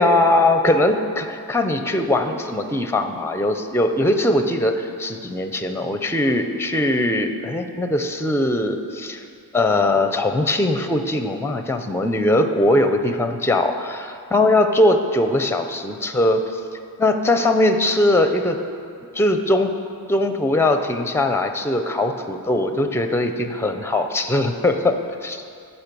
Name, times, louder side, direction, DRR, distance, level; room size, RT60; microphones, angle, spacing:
voice 1, 0.0-9.2 9.5-16.6 17.0-18.6 19.1-19.7 20.1-25.5, left 1 dB, 5° left, 7 dB, 0.6 m, -20 dB
10.5 x 5.7 x 6.8 m, 2.4 s
wide cardioid pair, 125°, 38 cm